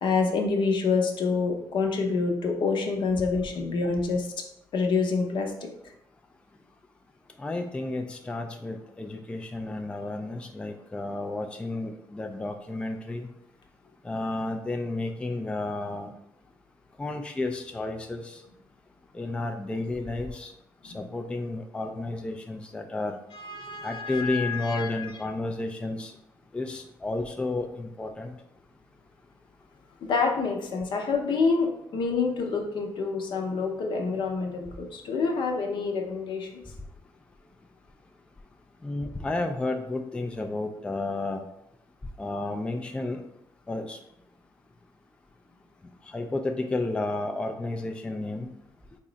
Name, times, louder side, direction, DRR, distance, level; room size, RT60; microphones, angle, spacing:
voice 1, 0.0-4.3 4.7-5.5 20.9-21.0 23.3-25.1 30.0-36.6, left 4 dB, 65° left, 3 dB, 0.6 m, -27 dB
voice 2, 7.4-13.3 14.0-16.1 17.0-18.4 19.1-20.5 20.8-23.2 23.8-26.1 26.5-28.4 38.8-41.4 42.2-43.2 43.7-44.0 46.0-48.5, left 2 dB, 10° left, 4 dB, 0.3 m, -32 dB
3.6 x 2.1 x 3.8 m, 0.78 s
cardioid pair, 90°, 9 cm